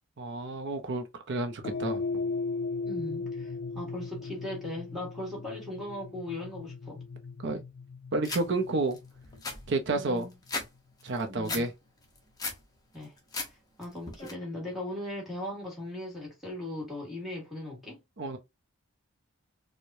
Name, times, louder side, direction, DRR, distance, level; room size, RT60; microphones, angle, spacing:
voice 1, 0.2-2.3 7.4-7.6 8.1-9.0 9.7-10.3 11.0-11.7 18.2-18.4, right 2 dB, 55° right, 0.6 m, -30 dB
sound 1, 1.6-10.1, left 4 dB, 45° left, 0.3 m, -37 dB
voice 2, 2.8-7.0 9.9-10.3 11.3-11.7 12.9-13.1 13.8-18.0, left 1 dB, ahead, 1.4 m, -38 dB
sound 2, 8.2-8.4 8.9-9.0 9.2-10.7 11.0-11.6 12.0-12.6 13.0-13.5 13.8-14.3, left 3 dB, 15° left, 0.8 m, -36 dB
4.6 x 2.1 x 2.6 m
head